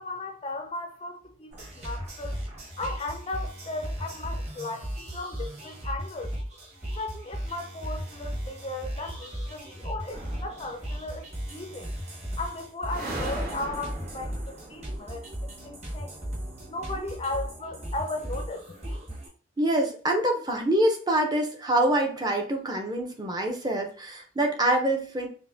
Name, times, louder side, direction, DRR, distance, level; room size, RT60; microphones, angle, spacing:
voice 1, 0.0-2.4 2.8-6.3 7.0-11.9 12.4-16.1 16.7-18.6, left 2 dB, 30° left, 0.4 m, -36 dB
sound 1, 1.5-19.3, equal, 35° right, 1.4 m, -36 dB
sound 2, 10.1-11.3 12.8-15.7, right 1 dB, 55° right, 1.3 m, -38 dB
voice 2, 19.6-25.3, right 1 dB, 20° right, 0.6 m, -25 dB
5.2 x 2.1 x 2.7 m
head